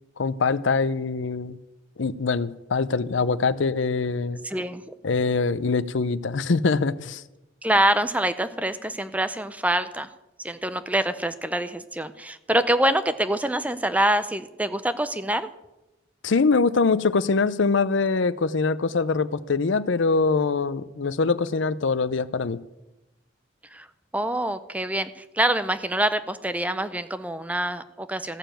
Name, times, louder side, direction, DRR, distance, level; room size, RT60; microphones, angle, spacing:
voice 1, 0.2-1.6 2.0-4.4 5.0-7.2 16.2-22.6, left 4 dB, 70° left, 0.6 m, -23 dB
voice 2, 4.4-4.8 7.6-10.1 10.4-15.5 23.7-23.9 24.1-28.4, right 1 dB, 5° right, 0.5 m, -25 dB
15.0 x 6.9 x 9.0 m
head